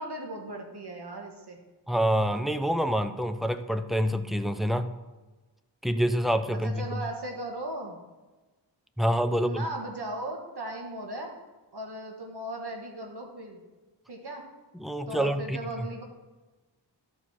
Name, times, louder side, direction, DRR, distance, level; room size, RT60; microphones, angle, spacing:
voice 1, 0.0-1.6 6.5-8.0 9.3-11.3 11.7-13.6 14.1-14.5 15.1-16.0, right 1 dB, 60° right, 1 dB, 1.5 m, -37 dB
voice 2, 1.9-4.9 5.8-6.8 9.0-9.7 14.8-15.9, equal, ahead, 8 dB, 0.5 m, -27 dB
13.0 x 4.6 x 4.3 m, 1.2 s
wide cardioid pair, 60°, 46 cm